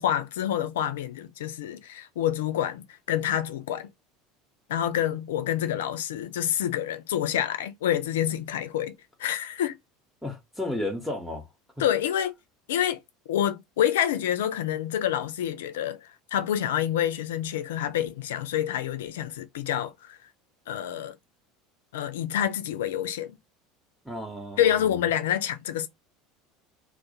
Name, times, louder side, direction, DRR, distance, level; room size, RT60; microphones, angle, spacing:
voice 1, 0.0-3.9 4.7-8.9 9.2-9.8 11.8-12.3 12.7-13.0 13.3-20.2 20.7-21.2 21.9-23.4 24.6-25.9, left 10 dB, 70° left, 0.3 m, -27 dB
voice 2, 10.2-11.5 24.0-25.0, left 1 dB, ahead, 0.7 m, -33 dB
2.2 x 2.1 x 2.7 m
figure-of-eight pair, 70°, 0 cm